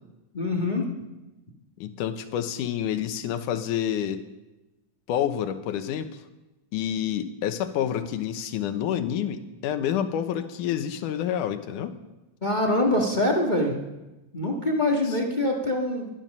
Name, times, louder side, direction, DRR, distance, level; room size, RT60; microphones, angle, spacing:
voice 1, 0.3-0.9 12.4-13.7 14.3-16.1, left 1 dB, 25° left, 0 dB, 0.9 m, -24 dB
voice 2, 1.8-4.2 5.1-6.2 6.7-12.0 15.1-15.2, left 10 dB, 80° left, 9 dB, 2.5 m, -28 dB
21.5 x 11.0 x 5.4 m, 1.0 s
omnidirectional pair, 3.6 m